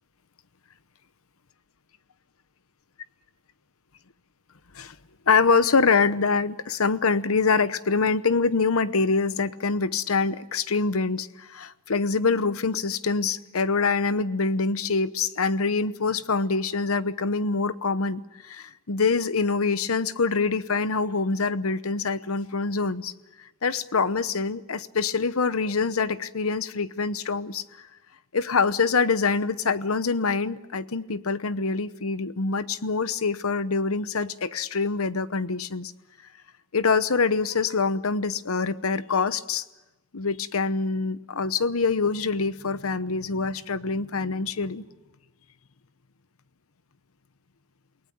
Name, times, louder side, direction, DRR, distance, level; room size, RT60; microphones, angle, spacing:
voice 1, 5.3-23.1 23.6-27.6 28.3-35.9 36.7-39.6 40.1-44.9, left 4 dB, 80° left, 14 dB, 0.9 m, -25 dB
28.5 x 19.0 x 8.8 m, 1.1 s
head